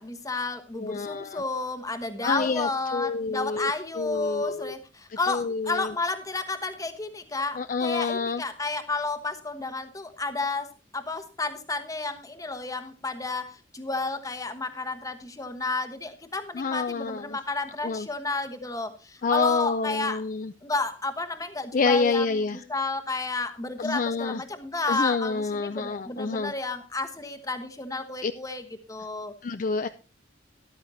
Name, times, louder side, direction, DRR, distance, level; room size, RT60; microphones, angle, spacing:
voice 1, 0.0-13.4 13.7-20.2 20.6-28.6 28.9-29.3, left 3 dB, 15° left, 8 dB, 1.2 m, -31 dB
voice 2, 0.8-1.4 2.2-3.7 4.0-4.7 5.3-5.9 7.6-8.4 16.5-17.4 17.8-18.1 19.2-20.5 21.7-22.6 23.8-24.4 24.9-26.5 28.2-28.3 29.4-29.9, left 4 dB, 40° left, 10 dB, 0.4 m, -27 dB
14.0 x 12.0 x 2.8 m, 0.32 s
head